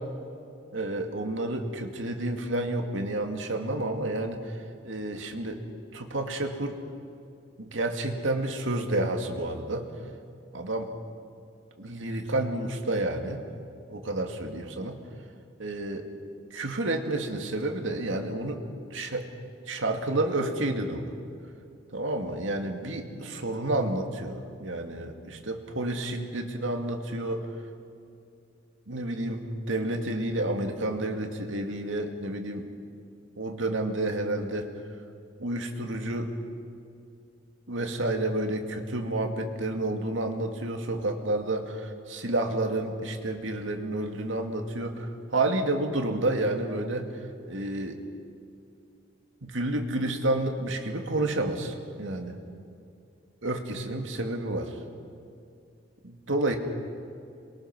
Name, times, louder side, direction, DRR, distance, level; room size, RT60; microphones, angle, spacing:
voice 1, 0.7-4.6 4.8-5.6 5.9-6.8 7.6-9.9 10.5-10.9 11.8-13.4 13.9-15.0 15.6-16.1 16.5-18.6 18.9-19.3 19.7-21.1 21.9-27.5 28.9-32.7 33.4-34.7 35.4-36.4 37.7-47.1 47.5-48.0 49.4-52.4 53.4-54.8 56.0-56.6, right 2 dB, 80° right, 4 dB, 2.3 m, -30 dB
27.5 x 23.0 x 6.1 m, 2.5 s
head